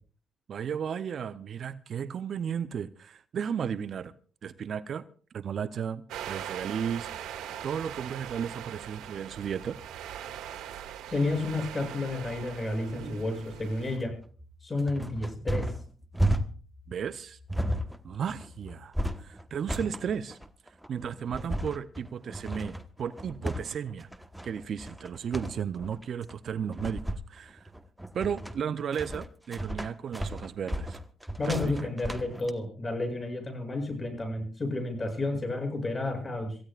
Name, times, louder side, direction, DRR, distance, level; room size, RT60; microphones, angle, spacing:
voice 1, 0.5-4.1 4.4-5.0 5.3-6.0 6.3-7.1 7.6-9.8 16.9-17.4 18.0-18.9 19.2-20.4 20.9-24.1 24.4-27.0 27.3-27.7 28.1-31.0 31.5-31.8, right 7 dB, 55° right, 0.7 m, -34 dB
sound 1, 6.1-14.0, right 10 dB, 90° right, 2.1 m, -41 dB
voice 2, 11.1-14.1 14.6-15.7 31.4-36.6, left 2 dB, 25° left, 7.8 m, -31 dB
sound 2, 13.9-32.5, right 1 dB, 5° right, 1.2 m, -34 dB
27.0 x 15.5 x 2.5 m
cardioid pair, 90°, 0 cm